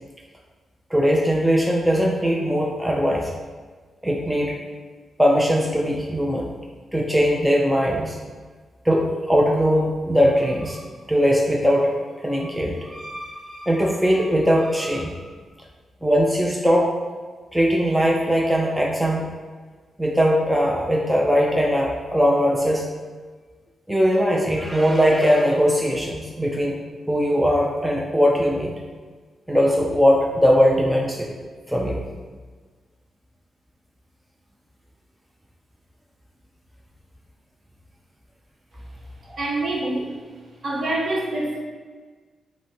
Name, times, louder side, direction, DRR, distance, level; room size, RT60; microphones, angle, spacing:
voice 1, 0.9-3.3 4.0-4.6 5.2-6.5 6.9-8.2 8.8-10.8 11.1-11.9 12.2-15.2 16.0-16.9 17.5-19.3 20.0-22.9 23.9-26.8 27.1-28.8 29.5-31.3 31.7-32.0 39.3-39.4, equal, 5° right, -2 dB, 0.5 m, -20 dB
voice 2, 39.4-40.1 40.6-41.6, right 2 dB, 50° right, -3 dB, 1.1 m, -25 dB
6.0 x 2.1 x 4.1 m, 1.4 s
cardioid pair, 105°, 0 cm